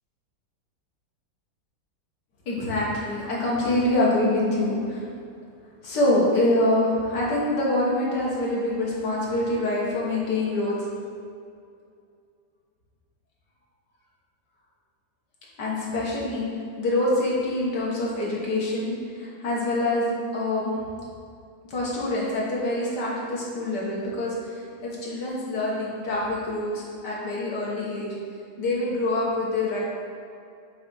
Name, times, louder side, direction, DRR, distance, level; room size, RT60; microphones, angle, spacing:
voice 1, 2.5-5.0 5.8-10.9 15.6-16.5 16.8-20.7 21.7-28.1 28.6-29.8, left 1 dB, 90° left, -5 dB, 1.9 m, -25 dB
6.3 x 3.5 x 5.6 m, 2.4 s
omnidirectional pair, 1.8 m